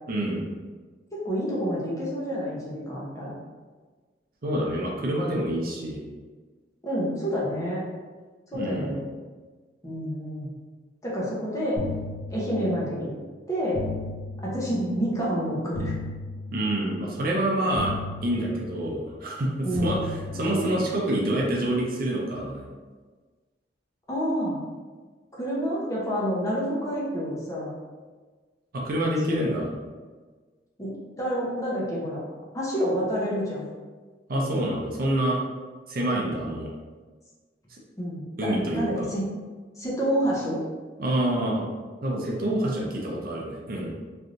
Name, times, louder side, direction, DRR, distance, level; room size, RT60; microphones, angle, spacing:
voice 1, 0.1-0.5 4.4-6.0 8.5-8.9 16.5-17.9 18.2-22.6 28.7-29.7 34.3-35.4 35.9-36.7 37.7-37.8 38.4-39.1 41.0-41.7 42.0-43.9, right 1 dB, 55° right, -2 dB, 0.5 m, -27 dB
voice 2, 1.1-3.4 6.8-7.8 8.5-9.1 9.8-10.5 11.0-11.8 12.3-13.1 13.5-13.8 14.4-15.9 19.6-20.1 20.5-20.6 24.1-24.6 25.4-27.7 29.2-29.4 30.8-30.9 31.2-32.2 32.5-33.7 38.0-39.2 39.8-40.6, equal, 20° left, -6 dB, 0.7 m, -28 dB
sound 1, 11.8-12.9 13.8-14.9 15.8-16.9 17.8-18.9 19.8-20.9, left 2 dB, 75° left, 0.9 m, -35 dB
3.2 x 2.6 x 2.5 m, 1.4 s
head